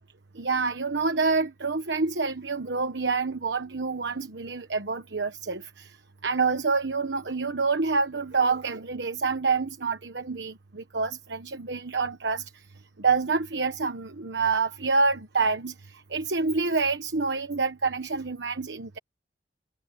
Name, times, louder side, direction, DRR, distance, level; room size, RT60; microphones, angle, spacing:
voice 1, 0.3-6.0 6.2-12.5 13.0-19.0, right 4 dB, 90° right, 1.2 m, -27 dB
head